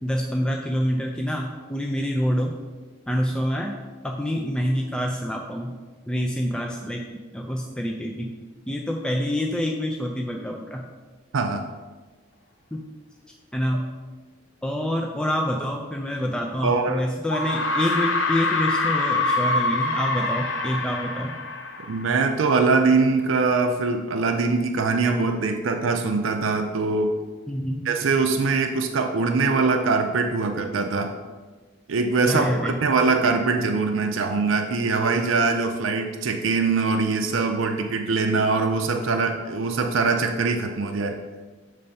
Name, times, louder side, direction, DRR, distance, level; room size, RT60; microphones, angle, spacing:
voice 1, 0.0-2.6 3.1-3.8 4.0-5.8 6.1-7.0 7.3-8.3 8.7-10.8 12.7-12.8 13.5-13.9 14.6-21.3 27.5-27.9 32.3-32.8, equal, 5° left, 0 dB, 0.4 m, -26 dB
voice 2, 11.3-11.6 16.6-17.0 21.9-27.2 27.9-31.1 31.9-41.1, right 4 dB, 90° right, 4 dB, 0.5 m, -22 dB
sound 1, 16.5-16.6 17.3-22.5, left 2 dB, 70° left, 0.7 m, -25 dB
6.9 x 3.3 x 5.3 m, 1.3 s
head